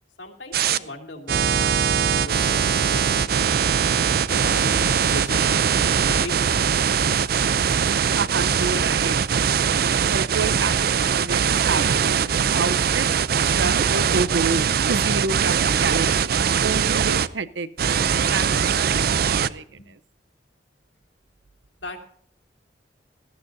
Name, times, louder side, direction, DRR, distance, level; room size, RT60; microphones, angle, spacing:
voice 1, 0.2-3.5 4.3-5.7 6.0-6.3 19.7-19.9 21.8-22.0, left 1 dB, 90° left, 3 dB, 2.6 m, -37 dB
sound 1, 0.5-0.8 1.3-17.3 17.8-19.5, right 7 dB, 60° right, 0.5 m, -21 dB
voice 2, 8.0-9.2 9.8-13.1 13.5-16.3 16.6-17.7 18.3-20.0, right 4 dB, 90° right, 15 dB, 0.7 m, -29 dB
18.5 x 14.0 x 2.7 m, 0.63 s
head